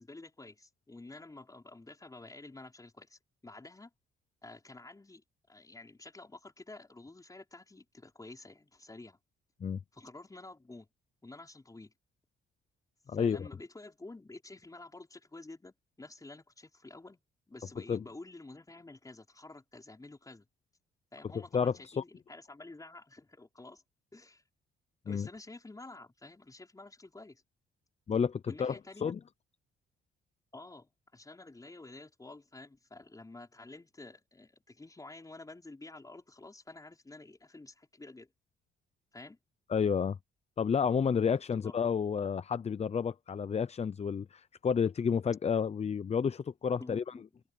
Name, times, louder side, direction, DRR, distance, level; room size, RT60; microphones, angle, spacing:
voice 1, 0.0-3.9 4.4-9.2 9.9-10.9 11.2-11.9 13.1-17.2 17.5-20.5 21.1-23.8 24.1-24.4 25.1-27.4 28.5-29.1 30.5-38.3 39.1-39.4 41.5-41.7 46.8-47.4, left 2 dB, 15° left, 5.1 m, -50 dB
voice 2, 13.1-13.5 17.9-18.0 21.5-22.0 25.1-25.3 28.1-29.2 39.7-40.2 40.6-47.0, left 6 dB, 35° left, 0.6 m, -30 dB
open air
cardioid pair, 90°, 20 cm